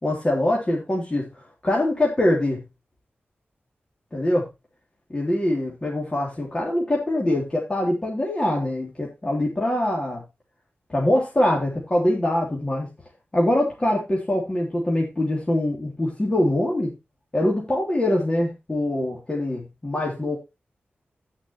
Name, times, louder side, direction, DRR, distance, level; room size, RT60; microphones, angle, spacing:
voice 1, 0.0-2.6 4.1-4.4 5.1-10.2 10.9-12.9 13.3-16.9 17.3-20.4, left 1 dB, 25° left, -3 dB, 3.2 m, -23 dB
16.5 x 6.0 x 3.1 m, 0.24 s
wide cardioid pair, 100°, 4 cm